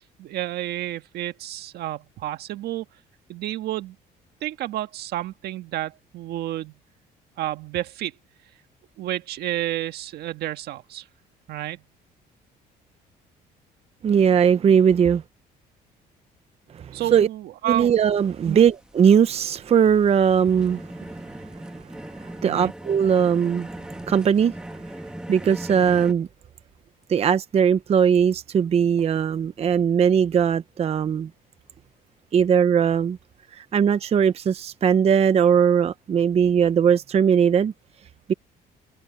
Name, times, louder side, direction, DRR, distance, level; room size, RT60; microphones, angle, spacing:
voice 1, 0.0-2.8 3.3-4.0 4.4-6.8 7.4-8.1 9.0-11.1 11.5-11.8 16.9-17.9 18.4-18.7 22.4-22.7, right 14 dB, 75° right, 1.5 m, -30 dB
voice 2, 14.0-15.2 16.7-17.3 17.7-20.8 22.2-23.7 24.1-24.6 25.3-26.3 27.1-31.3 32.3-33.2 33.5-37.7 38.3-38.4, right 7 dB, 35° right, 0.7 m, -19 dB
sound 1, 17.7-26.1, right 1 dB, 5° right, 1.8 m, -39 dB
cardioid pair, 110°, 17 cm